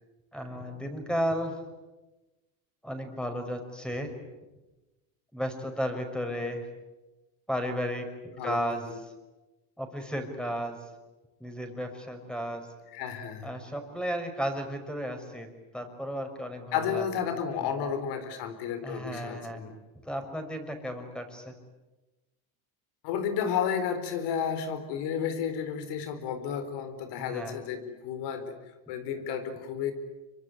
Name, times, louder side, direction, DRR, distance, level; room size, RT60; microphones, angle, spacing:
voice 1, 0.3-1.6 2.8-4.1 5.3-6.7 7.5-8.1 8.4-9.1 9.8-10.8 11.4-12.7 13.4-15.5 15.7-17.0 18.8-19.6 20.0-21.5 27.3-27.6, equal, ahead, 5 dB, 5.5 m, -34 dB
voice 2, 12.9-13.5 16.7-19.7 23.0-28.5 28.9-29.9, left 7 dB, 75° left, 9 dB, 4.4 m, -32 dB
26.0 x 24.0 x 9.7 m, 1.1 s
supercardioid pair, 105°, 41 cm